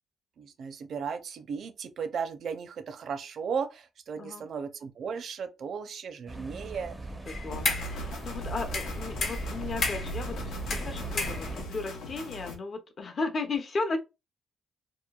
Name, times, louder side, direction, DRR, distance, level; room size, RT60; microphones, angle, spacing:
voice 1, 0.4-6.9, right 6 dB, 60° right, 0.5 m, -35 dB
voice 2, 4.2-4.5 7.3-14.0, left 3 dB, 45° left, 0.6 m, -35 dB
sound 1, 6.3-11.6, right 1 dB, 5° right, 0.5 m, -39 dB
sound 2, 7.3-8.0 8.7-10.2 10.7-11.8, left 3 dB, 65° left, 1.0 m, -32 dB
sound 3, 7.5-12.6, equal, 90° left, 0.6 m, -40 dB
2.9 x 2.2 x 2.2 m
cardioid pair, 90°, 0 cm